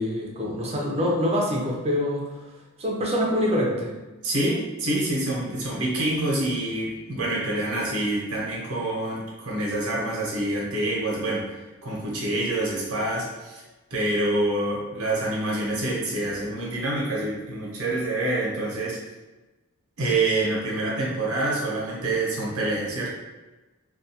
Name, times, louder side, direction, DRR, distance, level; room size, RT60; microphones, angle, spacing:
voice 1, 0.0-2.4 2.8-3.9, left 1 dB, 30° right, -2 dB, 0.5 m, -25 dB
voice 2, 4.2-13.6 13.9-19.0 20.0-23.1, right 2 dB, 90° right, -4 dB, 0.8 m, -26 dB
2.4 x 2.3 x 2.7 m, 1.1 s
head